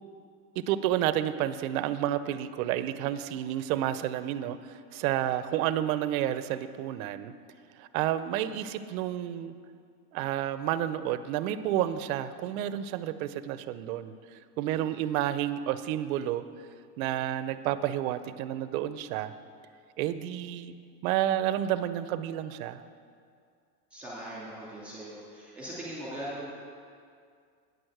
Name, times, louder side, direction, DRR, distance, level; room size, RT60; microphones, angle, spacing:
voice 1, 0.6-7.3 7.8-9.5 10.1-16.4 17.0-19.3 20.0-20.7 21.0-22.8, right 12 dB, 55° right, 13 dB, 0.6 m, -30 dB
voice 2, 14.7-15.0 23.9-26.5, right 1 dB, ahead, -8 dB, 2.5 m, -40 dB
9.3 x 6.3 x 7.9 m, 2.2 s
supercardioid pair, 135°, 50 cm